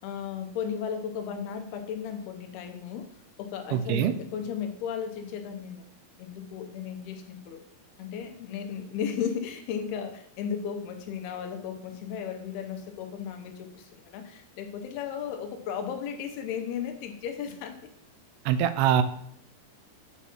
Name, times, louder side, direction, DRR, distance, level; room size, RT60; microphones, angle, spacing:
voice 1, 0.0-3.1 3.4-5.8 6.2-7.6 8.0-17.8, left 7 dB, 85° left, 6 dB, 2.7 m, -35 dB
voice 2, 3.7-4.1 18.5-19.0, right 10 dB, 85° right, 11 dB, 2.5 m, -23 dB
7.1 x 6.9 x 2.9 m, 0.67 s
omnidirectional pair, 4.6 m